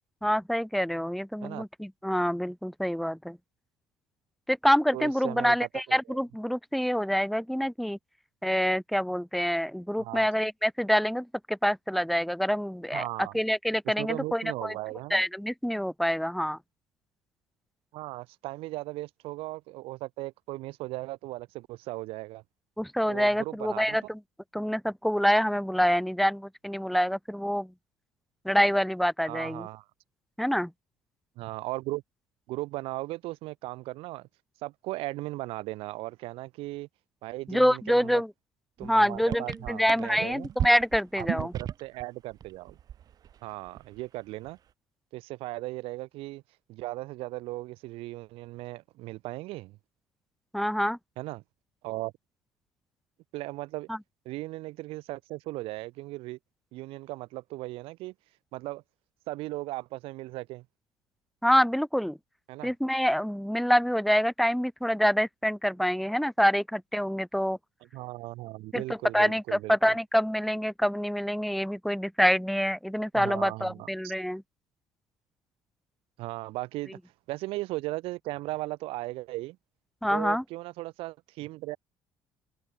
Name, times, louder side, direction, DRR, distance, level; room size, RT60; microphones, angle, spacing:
voice 1, 0.2-3.4 4.5-8.0 8.4-13.0 13.3-14.7 15.1-16.6 22.8-24.2 24.5-27.7 28.4-29.7 30.4-30.7 37.5-38.3 38.8-41.5 50.5-51.0 53.9-54.0 61.4-62.2 62.6-67.6 68.7-68.8 69.1-74.4 80.0-80.4, equal, ahead, 1.5 m, -26 dB
voice 2, 4.9-6.2 10.0-10.3 12.9-13.4 13.8-15.2 17.9-22.4 23.1-24.0 29.2-29.8 31.4-32.0 32.5-34.3 34.6-36.9 37.2-38.2 38.8-40.5 41.2-42.8 43.4-44.6 45.1-46.4 46.7-49.8 51.2-51.4 51.8-52.1 53.3-53.9 54.2-56.4 56.7-58.1 58.5-58.8 59.3-60.6 62.5-62.7 67.8-70.0 73.1-74.1 76.2-77.0 77.3-79.6 80.1-81.8, right 19 dB, 80° right, 4.8 m, -37 dB
sound 1, 38.8-38.9 39.1-42.0 42.3-43.4 43.7-44.0, right 9 dB, 40° right, 0.5 m, -34 dB
cardioid pair, 115°, 9 cm